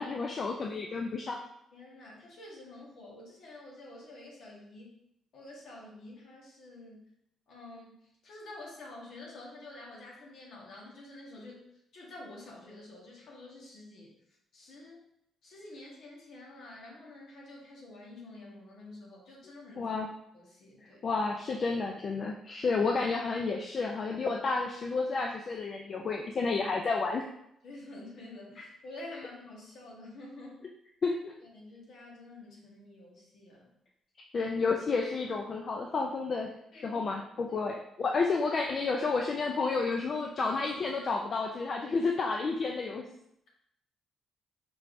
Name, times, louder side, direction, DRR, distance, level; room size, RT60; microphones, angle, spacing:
voice 1, 0.0-1.4 19.8-20.1 21.0-27.3 31.0-31.3 34.3-43.1, left 4 dB, 45° left, 1 dB, 0.4 m, -31 dB
voice 2, 1.7-5.0 5.3-7.1 7.5-8.0 8.2-11.6 11.9-14.1 14.5-15.0 15.4-19.9 20.3-21.0 27.6-30.6 31.4-33.7 36.7-37.2 37.5-37.6, left 2 dB, 70° left, -3 dB, 1.3 m, -48 dB
4.5 x 3.2 x 2.6 m, 0.77 s
cardioid pair, 90°, 0 cm